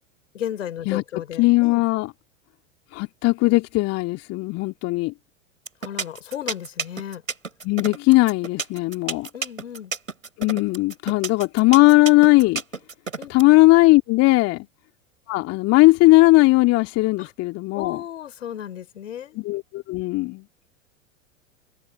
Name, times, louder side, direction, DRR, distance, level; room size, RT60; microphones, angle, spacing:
voice 1, 0.3-1.8 5.8-7.2 9.3-9.9 13.2-13.3 14.5-14.6 17.2-17.3 17.7-19.4, left 10 dB, 70° left, 4.4 m, -34 dB
voice 2, 1.4-2.1 2.9-5.1 7.6-9.3 10.4-12.6 13.3-14.7 15.3-18.0 19.4-20.4, left 21 dB, 40° left, 2.3 m, -18 dB
sound 1, 5.7-13.4, right 4 dB, 85° right, 5.0 m, -30 dB
figure-of-eight pair, 90°, 40 cm